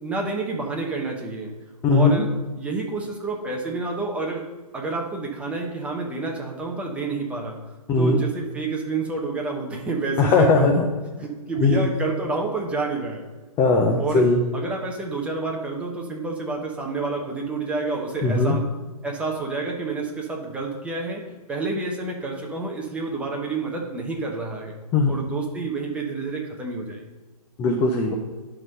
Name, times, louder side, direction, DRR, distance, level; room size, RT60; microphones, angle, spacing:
voice 1, 0.0-1.5 1.9-2.3 2.6-4.4 4.7-7.6 8.0-10.9 11.2-13.2 14.0-14.3 14.5-18.6 19.0-21.2 21.5-24.8 25.1-27.0, right 3 dB, 5° right, -1 dB, 1.0 m, -29 dB
voice 2, 1.8-2.3 7.9-8.2 10.2-10.8 11.6-11.9 13.6-14.4 18.2-18.6 24.9-25.1 27.6-28.1, left 3 dB, 10° left, 1 dB, 0.5 m, -19 dB
11.0 x 3.8 x 5.4 m, 1.3 s
hypercardioid pair, 140°, 20 cm